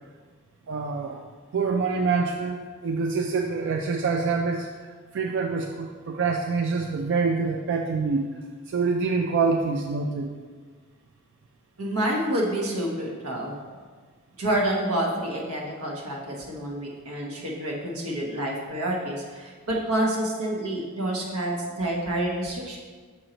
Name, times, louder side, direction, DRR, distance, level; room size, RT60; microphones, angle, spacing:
voice 1, 0.7-1.2 1.5-4.7 5.1-8.3 8.7-10.3, right 4 dB, 55° right, 3 dB, 0.3 m, -26 dB
voice 2, 11.8-13.6 14.4-22.8, right 1 dB, 85° right, -1 dB, 1.1 m, -28 dB
5.4 x 4.3 x 3.9 m, 1.5 s
head